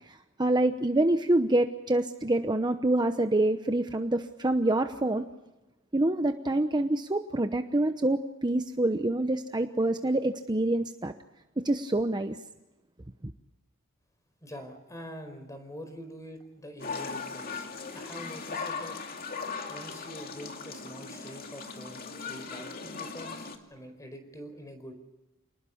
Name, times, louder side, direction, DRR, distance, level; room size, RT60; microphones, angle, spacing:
voice 1, 0.1-5.3 5.9-11.1 11.6-12.4, right 1 dB, 20° right, 7 dB, 0.9 m, -26 dB
voice 2, 14.4-17.6 17.9-19.0 19.7-24.9, equal, 15° left, 8 dB, 4.7 m, -45 dB
sound 1, 16.8-23.6, left 4 dB, 45° left, 2.5 m, -38 dB
28.0 x 20.0 x 7.2 m, 1.0 s
head